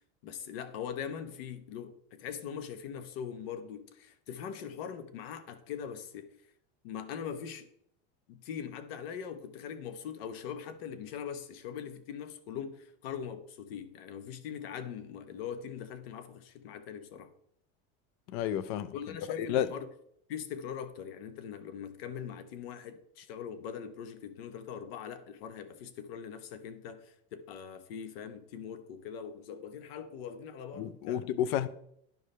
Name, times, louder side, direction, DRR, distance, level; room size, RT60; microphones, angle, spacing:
voice 1, 0.2-6.3 6.8-7.7 8.3-17.3 18.9-19.9 20.3-31.2, left 8 dB, 75° left, 1.0 m, -41 dB
voice 2, 18.3-18.9 19.4-19.7 30.8-31.7, left 10 dB, 45° left, 0.5 m, -31 dB
12.0 x 4.7 x 3.3 m
cardioid pair, 170°, 30 cm